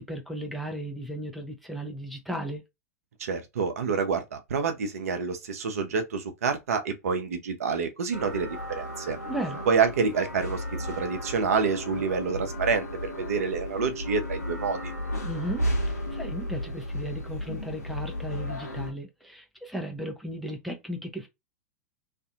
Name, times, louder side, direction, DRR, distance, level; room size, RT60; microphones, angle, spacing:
voice 1, 0.0-2.6 9.3-9.6 15.2-21.3, right 1 dB, ahead, 0.6 m, -35 dB
voice 2, 3.2-9.2 9.7-14.9, right 5 dB, 65° right, 0.6 m, -28 dB
sound 1, 8.1-18.9, equal, 85° left, 1.0 m, -34 dB
2.5 x 2.5 x 2.4 m
figure-of-eight pair, 90°, 9 cm